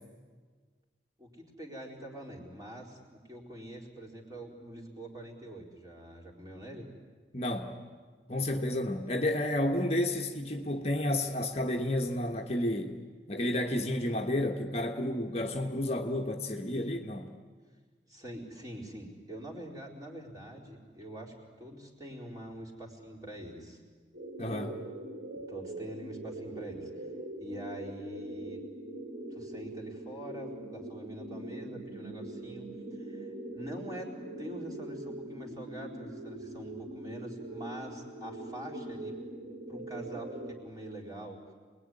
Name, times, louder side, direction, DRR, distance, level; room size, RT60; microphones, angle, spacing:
voice 1, 1.2-6.9 18.1-23.8 25.5-27.1 27.4-28.6 29.3-39.2 39.7-41.4, right 1 dB, 20° right, -1 dB, 4.2 m, -45 dB
voice 2, 7.3-7.8 8.3-13.0 13.3-17.3 24.4-24.7, left 1 dB, 35° left, 3 dB, 1.3 m, -31 dB
sound 1, 24.1-40.5, right 1 dB, 85° right, 3.6 m, -42 dB
27.5 x 20.5 x 9.8 m, 1.5 s
head